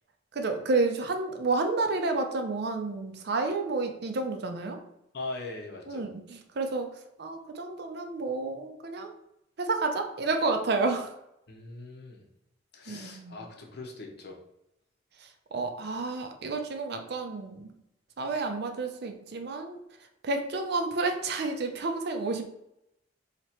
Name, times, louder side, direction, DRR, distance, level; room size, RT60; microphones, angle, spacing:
voice 1, 0.3-4.8 5.9-6.9 7.2-9.1 9.6-11.1 12.9-13.4 15.5-17.7 18.2-19.8 20.2-22.4, right 3 dB, 60° right, 5 dB, 0.5 m, -30 dB
voice 2, 5.1-6.0 11.5-12.2 12.7-14.4, left 2 dB, 60° left, 1 dB, 0.8 m, -40 dB
3.0 x 2.9 x 4.3 m, 0.83 s
head